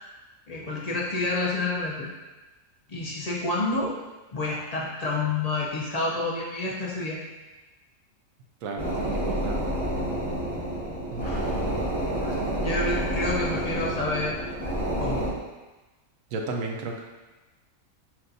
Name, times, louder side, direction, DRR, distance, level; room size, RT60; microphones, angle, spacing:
voice 1, 0.5-2.1 2.9-4.0 4.3-7.2 11.2-11.5 12.2-14.4 15.0-15.3, left 2 dB, 60° left, -4 dB, 0.4 m, -29 dB
voice 2, 8.6-9.6 11.1-11.8 16.3-17.0, right 3 dB, 80° right, 1 dB, 1.0 m, -34 dB
sound 1, 8.8-15.3, right 1 dB, 25° left, 1.4 m, -29 dB
5.8 x 2.9 x 2.6 m, 1.2 s
omnidirectional pair, 1.4 m